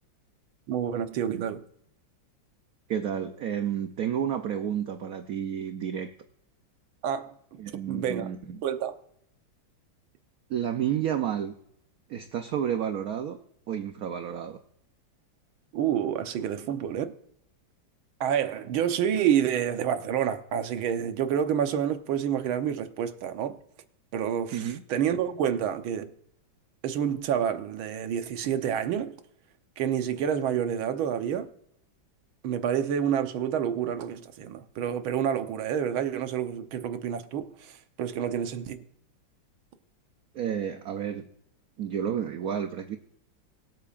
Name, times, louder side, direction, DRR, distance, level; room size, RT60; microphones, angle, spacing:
voice 1, 0.7-1.6 7.0-7.3 7.9-8.3 8.6-8.9 15.7-17.1 18.2-23.6 24.1-26.1 26.8-29.2 29.8-31.5 32.4-38.8, right 9 dB, 85° right, 1.7 m, -28 dB
voice 2, 2.9-6.1 7.6-8.6 10.5-11.5 12.1-13.4 13.7-14.6 24.5-24.8 40.3-41.3 41.8-43.0, right 9 dB, 65° right, 0.9 m, -30 dB
23.5 x 8.4 x 2.5 m
omnidirectional pair, 2.2 m